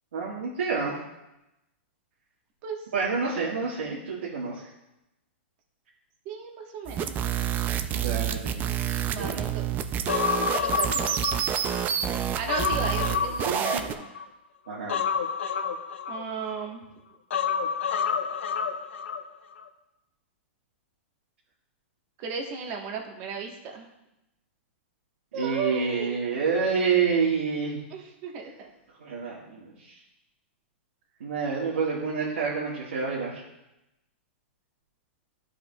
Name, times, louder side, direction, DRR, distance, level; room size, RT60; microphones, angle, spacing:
voice 1, 0.1-0.9 2.9-4.6 7.9-8.5 8.9-9.4 13.4-13.8 14.7-15.0 25.3-27.8 29.0-30.0 31.2-33.4, right 5 dB, 85° right, -6 dB, 1.7 m, -28 dB
voice 2, 6.2-7.3 9.1-9.6 10.5-11.2 12.3-14.1 15.5-15.6 16.1-16.8 22.2-23.9 25.3-26.2 27.9-28.7, right 5 dB, 40° right, 2 dB, 1.3 m, -35 dB
sound 1, 6.9-13.9, right 9 dB, 25° right, 0.4 m, -28 dB
Human voice, 10.1-11.9 12.2-14.2 14.9-16.7 17.3-19.2 19.5-19.6, left 6 dB, 80° left, 0.7 m, -29 dB
11.5 x 4.8 x 2.3 m, 0.92 s
hypercardioid pair, 135°, 7 cm